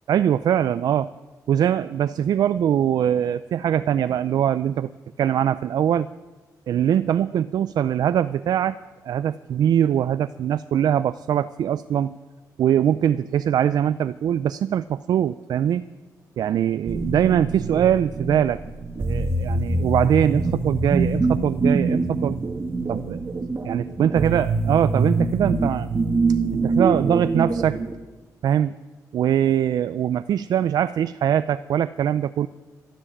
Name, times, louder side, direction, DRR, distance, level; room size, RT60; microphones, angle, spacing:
voice 1, 0.1-1.1 1.5-4.9 5.2-6.1 6.7-8.8 9.0-12.2 12.6-15.8 16.4-18.6 19.0-22.4 22.9-25.9 26.5-27.8 28.4-28.8 29.1-32.5, right 9 dB, 75° right, 14 dB, 0.4 m, -22 dB
sound 1, 16.9-27.9, right 3 dB, 35° right, 1.5 m, -24 dB
13.5 x 12.5 x 7.3 m, 1.3 s
cardioid pair, 95°, 7 cm